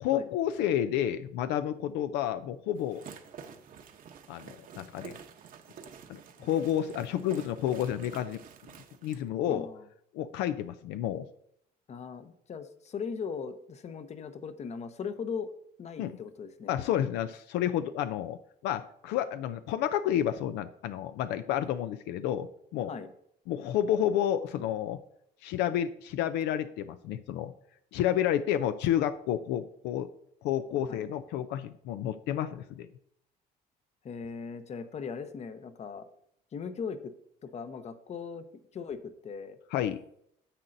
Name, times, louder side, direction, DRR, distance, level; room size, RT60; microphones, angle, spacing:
voice 1, 0.0-3.0 4.3-5.1 6.1-8.4 9.0-9.7 10.1-11.3 16.0-16.1 16.7-18.4 18.6-22.9 23.5-25.0 25.4-27.5 27.9-30.1 30.4-32.9 39.7-40.0, left 10 dB, 85° left, 11 dB, 0.4 m, -30 dB
sound 1, 2.8-9.2, right 7 dB, 55° right, 0.9 m, -49 dB
voice 2, 9.4-9.8 11.9-15.5 15.8-16.7 22.9-23.1 30.7-31.1 34.0-36.1 36.5-37.1 37.4-38.4 38.7-39.0 39.2-39.6, left 6 dB, 40° left, 11 dB, 0.8 m, -39 dB
9.8 x 7.4 x 2.6 m, 0.72 s
cardioid pair, 110°, 17 cm